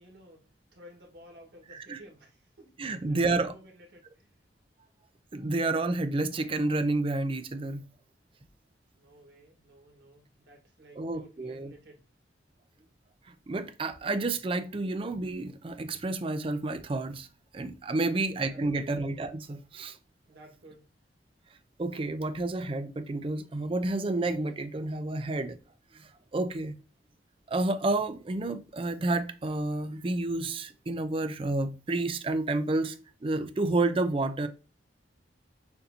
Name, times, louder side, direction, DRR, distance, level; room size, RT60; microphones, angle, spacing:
voice 1, 0.0-4.3 8.9-12.0 17.9-18.9 20.3-20.9, right 1 dB, 70° right, 1.5 m, -54 dB
voice 2, 2.8-3.5 5.3-7.8 11.0-11.7 13.5-17.3 17.5-20.0 21.8-25.6 25.9-26.8 27.5-33.0 33.2-34.5, right 2 dB, 30° right, 0.4 m, -30 dB
6.6 x 2.7 x 2.7 m
head